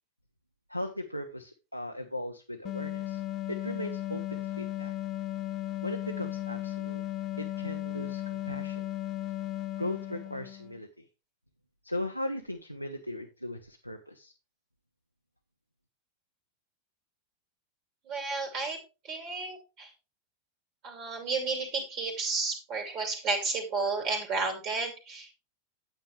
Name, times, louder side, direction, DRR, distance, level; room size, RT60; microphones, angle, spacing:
voice 1, 0.7-3.2 3.5-4.9 5.8-7.0 7.4-8.8 9.8-11.0 11.8-14.3, left 1 dB, 90° left, 3 dB, 0.8 m, -38 dB
sound 1, 2.6-10.8, left 13 dB, 30° left, 0.6 m, -35 dB
voice 2, 18.1-18.8 19.0-19.9 20.8-25.3, right 4 dB, 40° right, 3 dB, 2.5 m, -32 dB
9.2 x 8.1 x 3.2 m, 0.28 s
figure-of-eight pair, 90°, 0 cm